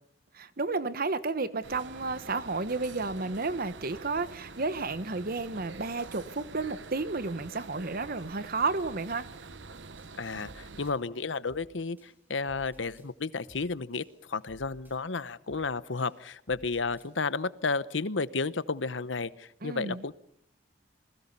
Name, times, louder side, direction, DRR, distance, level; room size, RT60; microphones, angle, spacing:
voice 1, 0.3-9.3 19.6-20.0, right 3 dB, 50° right, 1.3 m, -32 dB
sound 1, 1.6-10.9, right 4 dB, 70° right, 1.0 m, -46 dB
sound 2, 9.5-9.7 10.0-11.0 11.5-11.7 12.0-13.1 13.5-13.7 14.0-15.0 15.5-15.7 16.0-17.1, equal, 10° right, 7.0 m, -56 dB
voice 2, 10.2-20.2, left 4 dB, 80° left, 1.0 m, -32 dB
28.0 x 21.0 x 5.5 m
head